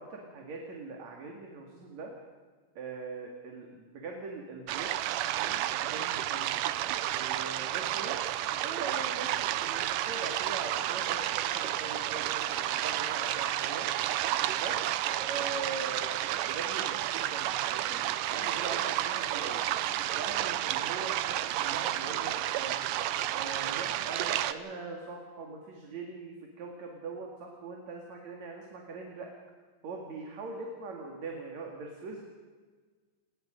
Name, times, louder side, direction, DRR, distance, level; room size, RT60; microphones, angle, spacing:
voice 1, 0.0-2.1 2.7-4.9 5.3-6.7 7.1-8.2 8.6-13.9 14.5-19.6 20.1-22.8 23.3-29.3 29.8-32.2, right 4 dB, 60° right, 0 dB, 3.4 m, -42 dB
sound 1, 4.7-24.5, right 13 dB, 85° right, 2.4 m, -31 dB
27.0 x 21.0 x 5.2 m, 1.4 s
omnidirectional pair, 3.7 m